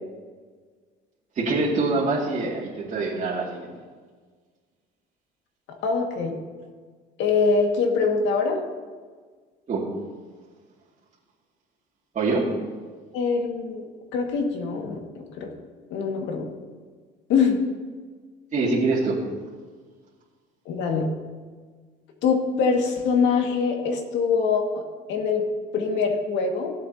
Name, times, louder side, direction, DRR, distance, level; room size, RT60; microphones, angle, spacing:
voice 1, 1.4-3.7 9.7-9.9 12.1-12.5 18.5-19.2, right 3 dB, 40° right, -7 dB, 2.3 m, -24 dB
voice 2, 5.8-6.4 7.2-8.6 13.1-13.9 14.1-15.5 15.9-16.5 17.3-17.6 20.7-21.1 22.2-24.8 25.1-25.4 25.7-26.7, left 5 dB, 70° left, 2 dB, 2.0 m, -23 dB
16.5 x 7.8 x 2.9 m, 1.5 s
cardioid pair, 115°, 19 cm